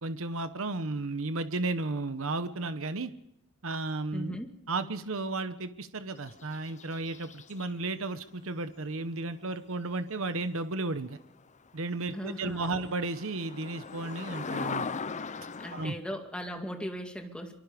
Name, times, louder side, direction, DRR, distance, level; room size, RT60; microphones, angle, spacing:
voice 1, 0.0-3.1 3.6-4.4 4.7-11.2 11.7-14.9 15.7-15.9, right 2 dB, 70° right, 11 dB, 1.1 m, -33 dB
voice 2, 4.1-4.5 12.1-12.8 15.6-17.5, equal, 5° left, 3 dB, 2.3 m, -38 dB
sound 1, 6.2-7.7 11.2-11.3 11.8-11.9 12.1-15.9, left 5 dB, 35° left, 0.7 m, -39 dB
24.5 x 24.0 x 5.2 m, 0.80 s
head